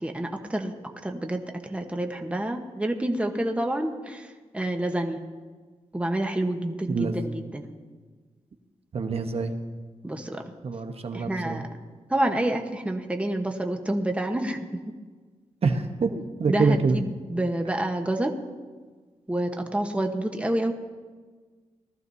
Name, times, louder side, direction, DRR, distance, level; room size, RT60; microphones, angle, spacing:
voice 1, 0.0-0.7 1.0-5.2 5.9-7.7 10.0-10.4 11.1-11.6 12.1-14.7 16.1-18.3 19.3-20.7, right 1 dB, 10° right, 4 dB, 1.1 m, -28 dB
voice 2, 8.9-9.5 10.6-11.6 15.6-16.1 16.4-17.0, right 4 dB, 50° right, 6 dB, 1.0 m, -25 dB
19.5 x 14.0 x 2.7 m, 1.4 s
cardioid pair, 90°, 13 cm